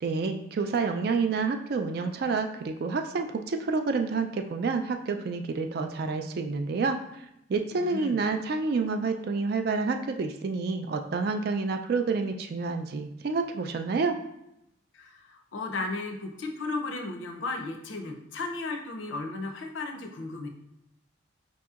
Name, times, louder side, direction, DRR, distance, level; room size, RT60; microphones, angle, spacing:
voice 1, 0.0-7.0 7.5-14.2, right 4 dB, 50° right, 6 dB, 0.3 m, -28 dB
voice 2, 7.7-8.2 14.9-20.5, left 3 dB, 70° left, 4 dB, 0.5 m, -35 dB
5.0 x 2.8 x 2.4 m, 0.81 s
head